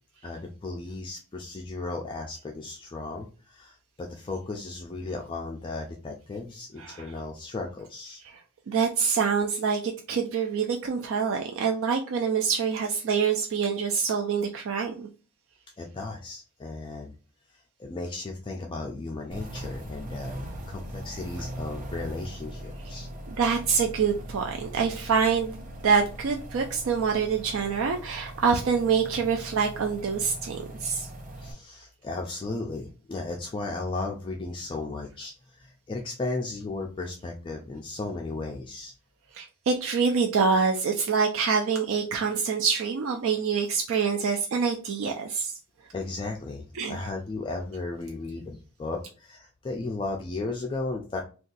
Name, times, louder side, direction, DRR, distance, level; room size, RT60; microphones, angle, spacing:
voice 1, 0.2-8.2 15.8-17.1 17.5-23.1 31.4-38.9 45.9-51.2, left 3 dB, 20° left, 1 dB, 0.3 m, -35 dB
voice 2, 8.7-15.1 23.4-31.1 39.3-45.5 46.8-47.0, right 5 dB, 60° right, 3 dB, 0.4 m, -26 dB
sound 1, 19.3-31.5, right 1 dB, 35° right, 0.8 m, -40 dB
2.6 x 2.3 x 3.8 m, 0.35 s
head